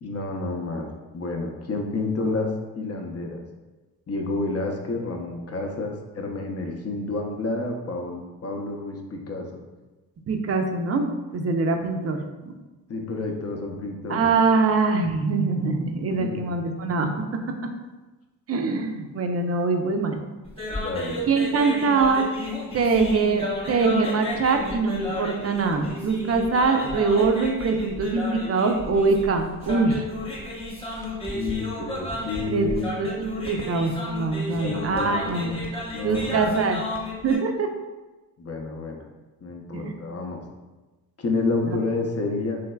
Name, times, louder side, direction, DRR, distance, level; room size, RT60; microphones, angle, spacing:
voice 1, 0.0-3.4 4.1-9.6 12.9-14.3 16.2-16.5 20.7-21.2 31.3-33.0 34.4-36.6 38.4-39.0 39.4-40.4 41.2-42.6, left 3 dB, 40° left, 2 dB, 0.6 m, -30 dB
voice 2, 10.3-12.2 14.1-17.4 18.5-20.2 21.3-22.3 22.7-30.1 32.5-35.6 36.0-36.8 37.2-37.7 39.7-39.9 41.6-41.8, right 4 dB, 40° right, 5 dB, 0.5 m, -23 dB
sound 1, 20.5-37.4, left 1 dB, 15° left, 1.0 m, -33 dB
3.2 x 3.1 x 2.2 m, 1.2 s
cardioid pair, 60°, 39 cm